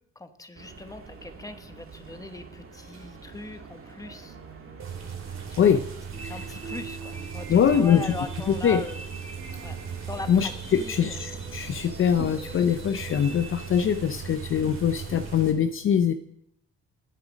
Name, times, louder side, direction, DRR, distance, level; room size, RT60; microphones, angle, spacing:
voice 1, 0.1-4.4 5.5-5.8 6.3-9.0 9.6-9.8 10.1-11.2, left 2 dB, 10° left, 8 dB, 1.0 m, -40 dB
sound 1, 0.5-15.5, right 4 dB, 45° right, 1.9 m, -47 dB
sound 2, 4.8-15.5, right 6 dB, 65° right, 2.4 m, -38 dB
sound 3, 6.1-14.1, right 3 dB, 20° right, 3.5 m, -44 dB
voice 2, 7.5-8.1 8.5-8.8 10.3-16.1, left 8 dB, 45° left, 10 dB, 0.6 m, -23 dB
10.5 x 8.0 x 5.1 m, 0.73 s
cardioid pair, 90°, 30 cm